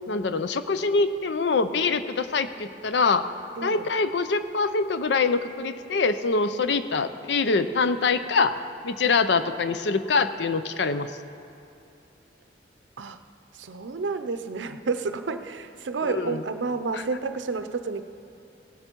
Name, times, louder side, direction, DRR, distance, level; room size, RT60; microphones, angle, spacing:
voice 1, 0.1-3.3 3.6-8.6 8.8-11.1 16.0-16.4 16.9-17.0, left 4 dB, 70° left, 11 dB, 0.5 m, -24 dB
voice 2, 3.6-3.9 13.0-13.2 13.6-18.0, right 4 dB, 80° right, 10 dB, 0.6 m, -30 dB
17.5 x 7.9 x 4.5 m, 2.8 s
head